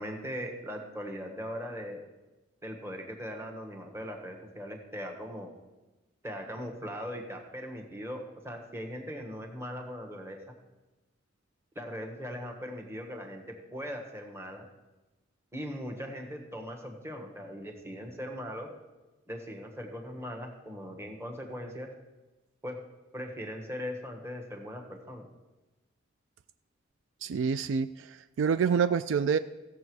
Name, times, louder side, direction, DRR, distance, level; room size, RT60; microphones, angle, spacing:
voice 1, 0.0-2.0 2.6-5.5 6.2-10.6 11.7-14.7 15.5-18.7 19.3-21.9 22.6-22.8 23.1-25.3, equal, 15° right, 2 dB, 1.3 m, -39 dB
voice 2, 27.2-29.4, right 6 dB, 65° right, 12 dB, 0.3 m, -27 dB
15.5 x 6.9 x 4.8 m, 1.1 s
head